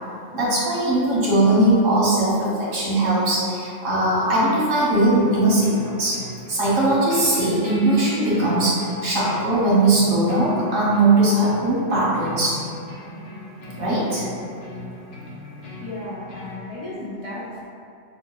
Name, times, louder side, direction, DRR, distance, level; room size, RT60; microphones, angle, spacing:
voice 1, 0.3-6.2 6.5-12.6 13.8-14.2, right 2 dB, 90° right, -7 dB, 1.4 m, -20 dB
sound 1, 5.1-16.6, left 1 dB, 70° left, 1.0 m, -39 dB
voice 2, 15.8-17.7, left 1 dB, 45° left, -10 dB, 0.4 m, -34 dB
6.0 x 2.1 x 2.3 m, 2.5 s
omnidirectional pair, 1.3 m